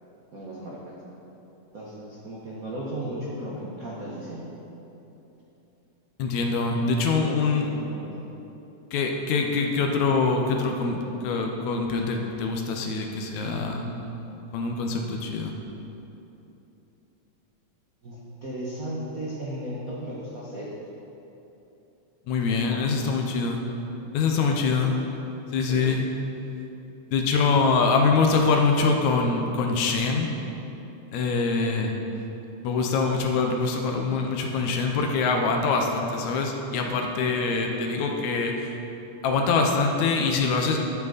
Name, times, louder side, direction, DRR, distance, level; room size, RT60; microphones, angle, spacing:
voice 1, 0.3-0.9 1.7-4.5 7.3-7.4 7.7-8.2 13.4-14.2 18.0-20.7 22.7-23.0 24.5-25.0 25.7-25.9, right 1 dB, 85° right, -6 dB, 0.7 m, -36 dB
voice 2, 6.2-7.7 8.9-13.8 14.5-15.5 22.3-23.6 24.1-24.9 25.5-26.1 27.1-30.3 31.1-31.9 32.6-38.7 39.2-40.8, left 4 dB, 75° left, 2 dB, 2.0 m, -24 dB
12.0 x 7.4 x 4.1 m, 3.0 s
omnidirectional pair, 3.5 m